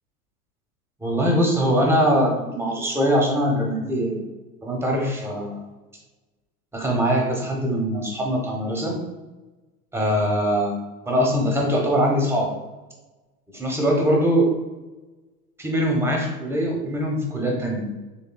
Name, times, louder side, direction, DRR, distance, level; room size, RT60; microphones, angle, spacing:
voice 1, 1.0-4.2 4.6-5.6 6.7-9.0 9.9-10.8 11.1-12.5 13.5-14.5 15.6-17.9, equal, 5° right, 0 dB, 0.9 m, -22 dB
6.7 x 2.6 x 2.2 m, 1.2 s
hypercardioid pair, 95°, 47 cm